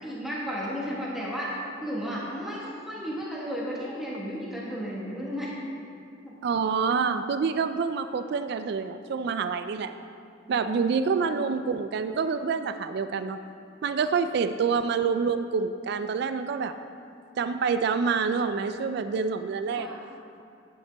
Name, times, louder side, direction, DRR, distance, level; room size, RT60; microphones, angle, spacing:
voice 1, 0.0-1.5 1.8-5.5 6.2-6.3 10.4-11.0 19.8-20.0, equal, ahead, -7 dB, 1.3 m, -34 dB
voice 2, 6.4-9.9 10.5-13.4 13.8-16.7 17.4-19.9, right 5 dB, 60° right, 10 dB, 0.3 m, -27 dB
9.5 x 9.3 x 3.4 m, 2.5 s
head